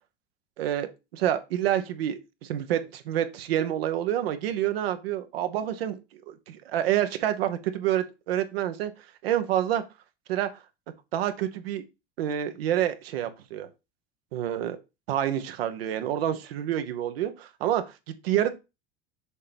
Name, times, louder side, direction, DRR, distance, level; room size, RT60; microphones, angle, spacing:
voice 1, 0.6-0.9 1.1-6.0 6.3-8.9 9.2-9.8 10.3-10.5 11.1-11.8 12.2-13.7 14.3-14.8 15.1-18.5, right 11 dB, 90° right, 0.9 m, -28 dB
6.4 x 2.9 x 5.1 m
supercardioid pair, 95°, 29 cm